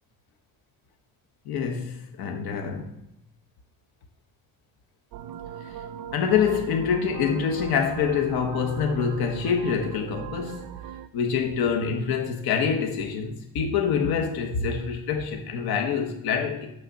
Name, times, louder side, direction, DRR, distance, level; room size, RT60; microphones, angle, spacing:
voice 1, 1.5-3.0 5.6-5.7 6.1-10.7 11.1-16.7, left 6 dB, 85° left, 1.1 m, -26 dB
sound 1, 5.1-11.1, right 11 dB, 65° right, 0.6 m, -39 dB
6.5 x 6.5 x 5.6 m
cardioid pair, 175°, 36 cm